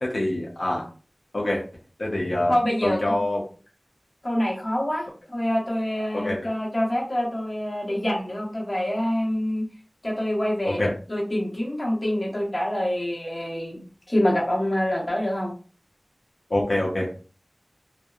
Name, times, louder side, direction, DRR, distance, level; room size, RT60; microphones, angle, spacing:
voice 1, 0.0-0.8 1.3-1.6 2.0-2.5 2.8-3.4 6.1-6.4 10.6-10.9 16.5-17.1, left 1 dB, 80° left, -3 dB, 0.6 m, -25 dB
voice 2, 2.5-3.1 4.2-9.6 10.0-15.5, left 1 dB, 35° left, -3 dB, 1.2 m, -26 dB
2.6 x 2.1 x 2.4 m, 0.37 s
wide cardioid pair, 40°, 0 cm